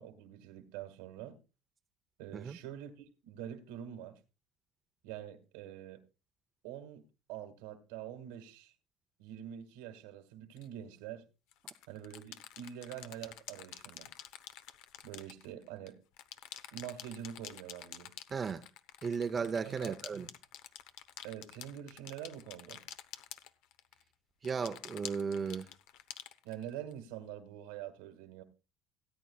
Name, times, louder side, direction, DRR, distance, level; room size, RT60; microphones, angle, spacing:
voice 1, 0.0-1.4 2.2-4.2 5.0-6.0 6.6-7.0 7.3-8.7 9.2-11.2 11.9-14.1 15.0-16.0 16.7-18.1 19.4-20.3 21.2-22.8 26.4-28.4, right 10 dB, 85° right, 2.0 m, -45 dB
sound 1, 10.6-10.7 11.5-15.9 16.2-24.0 24.4-26.9, left 11 dB, 75° left, 0.9 m, -49 dB
voice 2, 18.3-18.7 19.0-20.3 24.4-25.7, right 5 dB, 30° right, 0.7 m, -35 dB
17.5 x 9.1 x 2.4 m
supercardioid pair, 95°, 0 cm